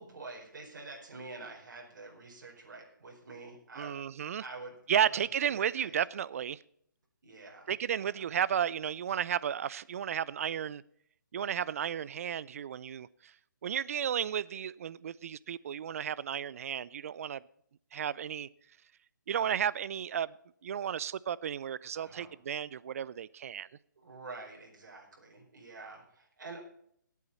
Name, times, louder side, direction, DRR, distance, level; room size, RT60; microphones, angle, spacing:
voice 1, 0.0-3.9 4.4-5.2 5.4-6.0 7.2-8.2 22.0-22.3 24.0-26.6, right 3 dB, 65° right, 0 dB, 4.6 m, -47 dB
voice 2, 3.8-4.4 4.9-6.6 7.7-10.8 11.3-13.3 13.6-17.4 17.9-18.5 19.3-20.3 20.6-23.7, right 9 dB, 45° right, 21 dB, 0.5 m, -33 dB
18.5 x 8.4 x 4.2 m, 0.69 s
hypercardioid pair, 150°, 11 cm